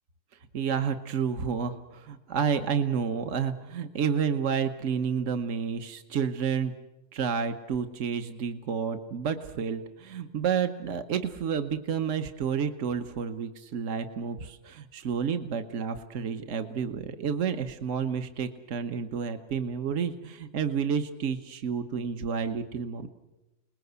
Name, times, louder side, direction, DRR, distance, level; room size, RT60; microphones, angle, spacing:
voice 1, 0.5-6.7 7.1-23.1, right 7 dB, 70° right, 7 dB, 1.4 m, -30 dB
29.0 x 20.0 x 8.1 m, 1.0 s
omnidirectional pair, 1.3 m